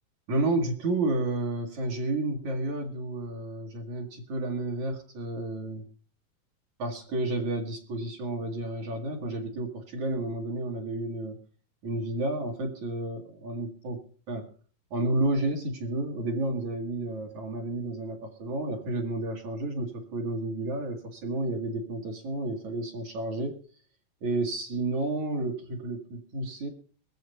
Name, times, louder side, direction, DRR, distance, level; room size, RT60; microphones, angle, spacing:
voice 1, 0.3-5.9 6.8-11.4 11.8-14.0 14.3-14.5 14.9-23.6 24.2-26.7, right 2 dB, 55° right, 0 dB, 2.7 m, -31 dB
21.0 x 7.6 x 5.4 m, 0.42 s
omnidirectional pair, 4.2 m